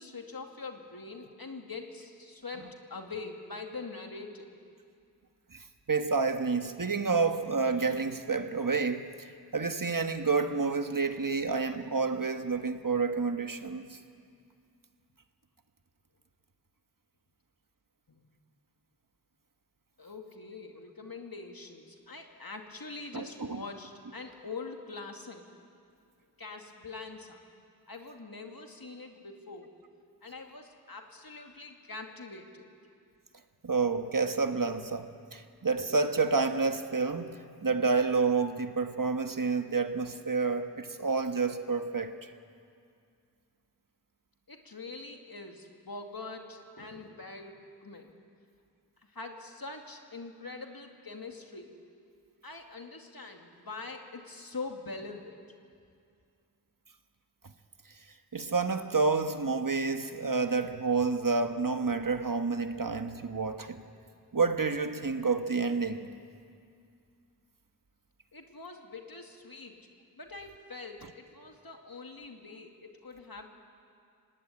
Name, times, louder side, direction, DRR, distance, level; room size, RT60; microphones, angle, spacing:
voice 1, 0.0-4.6 18.1-18.2 20.0-25.5 26.4-27.4 27.9-29.7 30.2-32.7 44.5-48.1 49.0-51.8 52.4-55.4 68.3-69.9 70.2-73.5, left 3 dB, 65° left, 2.4 m, -44 dB
voice 2, 5.5-14.0 23.1-23.6 33.6-42.3 58.3-63.8 64.3-66.1, right 4 dB, 55° right, 1.4 m, -29 dB
25.5 x 18.5 x 9.8 m
wide cardioid pair, 60°, 38 cm